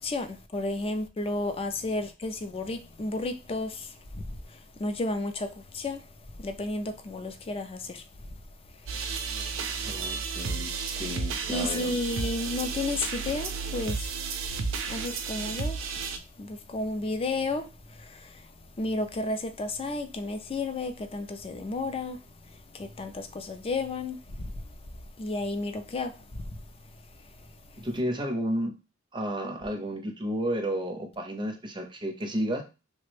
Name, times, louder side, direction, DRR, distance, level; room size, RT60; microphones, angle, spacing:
voice 1, 0.0-8.3 8.8-9.0 11.0-11.1 11.5-14.1 14.6-15.8 16.4-18.5 18.8-22.2 22.4-24.6 25.2-26.5 27.4-27.8, left 2 dB, 30° left, 0.4 m, -33 dB
sound 1, 8.9-16.2, right 5 dB, 70° right, 0.4 m, -33 dB
voice 2, 9.8-12.0 27.8-28.7 29.1-32.6, equal, 25° right, 0.6 m, -32 dB
3.2 x 2.1 x 3.2 m
head